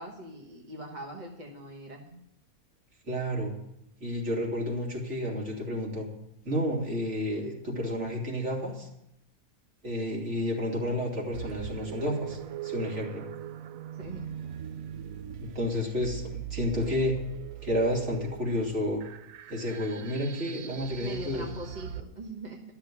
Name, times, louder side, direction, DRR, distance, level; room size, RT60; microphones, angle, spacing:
voice 1, 0.0-2.2 13.9-14.3 21.0-22.6, right 1 dB, 30° right, 0 dB, 1.4 m, -41 dB
voice 2, 3.1-3.5 4.0-6.1 6.4-8.9 9.8-13.2 15.4-17.2 17.6-19.0 19.5-21.4, left 1 dB, 50° right, -1 dB, 3.1 m, -31 dB
sound 1, 11.3-22.0, right 11 dB, 70° right, 1.1 m, -40 dB
12.5 x 7.0 x 9.7 m, 0.80 s
omnidirectional pair, 1.6 m